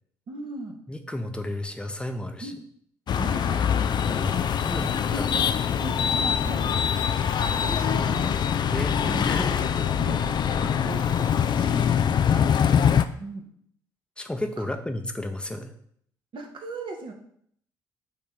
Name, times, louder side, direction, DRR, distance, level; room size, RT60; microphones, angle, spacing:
voice 1, 0.3-0.8 2.4-2.6 3.2-3.6 4.7-5.4 5.8-6.7 7.6-8.4 9.0-12.0 13.2-13.5 14.6-14.7 16.3-17.1, right 3 dB, 50° right, 3 dB, 1.3 m, -38 dB
voice 2, 0.9-2.5 4.0-5.3 8.7-9.0 9.2-9.5 12.2-12.6 14.2-15.7, left 1 dB, 10° left, 5 dB, 0.9 m, -32 dB
sound 1, 3.1-13.0, left 8 dB, 40° left, 0.4 m, -23 dB
8.6 x 3.1 x 4.0 m, 0.66 s
figure-of-eight pair, 45°, 11 cm